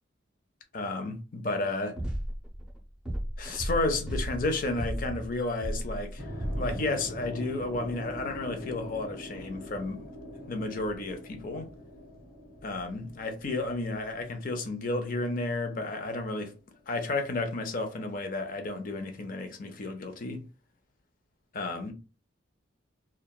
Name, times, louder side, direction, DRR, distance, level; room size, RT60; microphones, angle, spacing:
voice 1, 0.7-2.0 3.4-6.3 6.6-10.1 10.5-11.7 12.6-16.5 16.9-20.5 21.5-21.9, left 2 dB, 45° left, 0.5 m, -32 dB
sound 1, 1.7-2.8 3.0-6.8, equal, 5° right, 0.7 m, -34 dB
sound 2, 6.2-16.3, equal, 85° left, 1.1 m, -43 dB
2.8 x 2.2 x 2.2 m
head